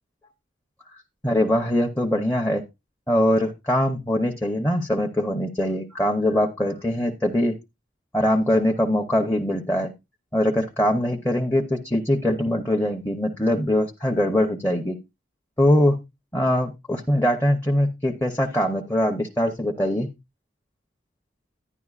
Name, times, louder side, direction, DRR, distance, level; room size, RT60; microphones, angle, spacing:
voice 1, 1.2-2.6 3.1-7.6 8.1-9.9 10.3-15.0 15.6-16.0 16.3-20.1, left 1 dB, 10° left, 1 dB, 0.7 m, -22 dB
11.0 x 10.0 x 2.4 m, 0.23 s
head